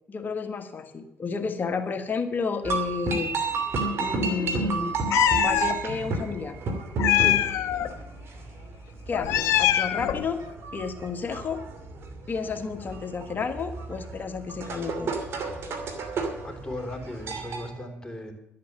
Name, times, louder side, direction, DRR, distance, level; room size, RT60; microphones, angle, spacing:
voice 1, 0.1-3.3 4.0-4.9 5.4-6.6 9.1-10.4 10.7-11.6 12.3-15.1, left 5 dB, 45° left, 7 dB, 1.7 m, -31 dB
sound 1, 2.6-17.7, right 3 dB, 60° right, 2.6 m, -32 dB
Meow, 5.1-5.7 7.0-7.9 9.1-10.3, left 12 dB, 75° left, 0.9 m, -23 dB
voice 2, 7.2-7.6 16.4-18.3, left 1 dB, 15° left, 3 dB, 4.1 m, -37 dB
12.5 x 8.5 x 7.6 m, 0.90 s
supercardioid pair, 70°, 5 cm